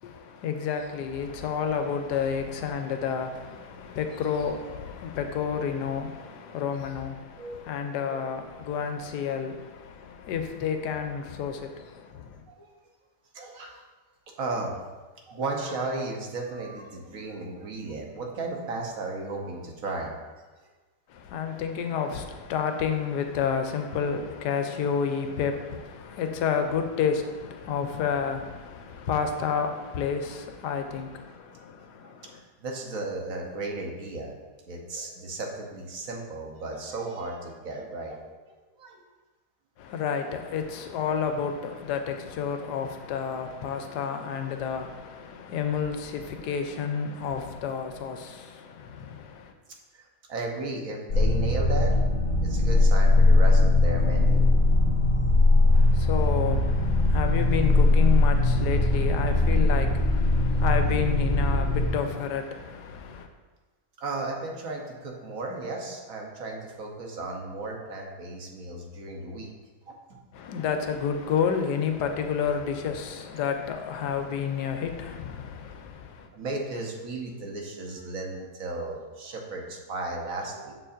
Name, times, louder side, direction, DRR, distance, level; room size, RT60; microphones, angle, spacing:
voice 1, 0.0-12.4 21.1-32.4 39.8-49.5 55.7-63.3 70.3-76.3, left 7 dB, 85° left, 1.2 m, -30 dB
voice 2, 13.3-13.8 14.4-20.3 32.0-34.3 34.7-38.2 38.8-39.0 43.9-44.0 49.9-51.9 52.4-54.5 64.0-69.5 69.9-70.2 76.3-80.7, right 2 dB, 60° right, 1.3 m, -35 dB
sound 1, 51.1-61.9, left 2 dB, 60° left, 1.6 m, -20 dB
6.9 x 6.7 x 2.5 m
omnidirectional pair, 1.8 m